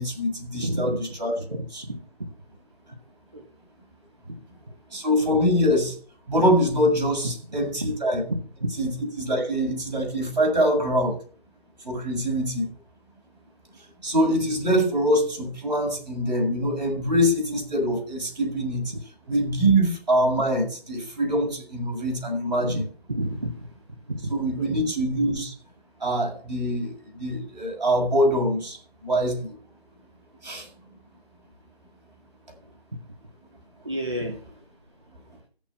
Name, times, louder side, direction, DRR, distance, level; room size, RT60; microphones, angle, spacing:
voice 1, 0.0-1.3 1.7-1.8 4.9-6.0 6.3-8.2 8.8-11.2 11.8-12.7 14.0-18.9 19.3-22.8 24.3-25.5 26.0-29.6 30.4-30.7, equal, 45° right, 0 dB, 7.1 m, -24 dB
voice 2, 0.5-2.3 3.3-3.4 4.3-4.4 5.3-5.4 7.8-8.0 8.3-8.7 18.9-19.0 22.6-22.8 23.1-23.7 24.1-24.3 24.6-24.8 32.9-33.0 33.8-34.4, right 1 dB, 25° right, 3 dB, 1.2 m, -31 dB
15.0 x 7.3 x 6.0 m, 0.42 s
figure-of-eight pair, 170°, 31 cm